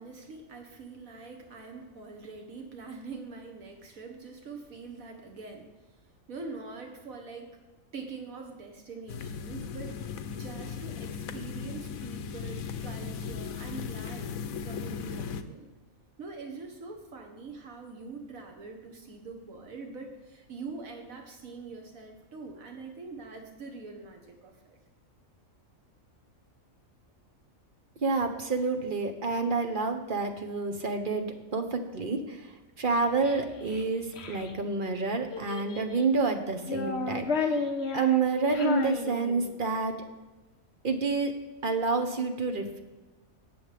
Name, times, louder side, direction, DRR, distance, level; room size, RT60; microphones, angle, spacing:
voice 1, 0.0-5.7 6.3-7.6 7.9-15.7 16.2-24.8, right 4 dB, 80° right, 3 dB, 1.7 m, -44 dB
sound 1, 9.1-15.4, left 6 dB, 85° left, 1.1 m, -37 dB
voice 2, 28.0-31.3 31.5-37.6 37.9-40.0 40.8-41.4 41.6-42.8, right 3 dB, 40° right, 5 dB, 1.1 m, -29 dB
Child speech kid speaking, 32.8-34.5 35.3-36.1 36.6-39.7, left 3 dB, 55° left, 1.2 m, -33 dB
18.5 x 7.0 x 3.4 m, 1.2 s
omnidirectional pair, 1.4 m